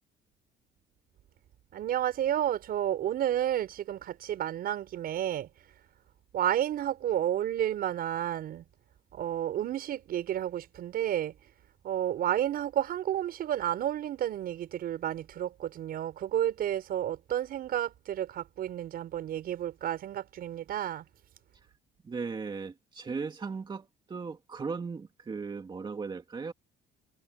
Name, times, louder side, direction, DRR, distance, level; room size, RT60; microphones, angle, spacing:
voice 1, 1.7-5.5 6.3-8.6 9.1-11.4 11.8-21.0, right 11 dB, 65° right, 6.0 m, -31 dB
voice 2, 22.0-26.5, right 5 dB, 25° right, 2.4 m, -37 dB
cardioid pair, 110°, 17 cm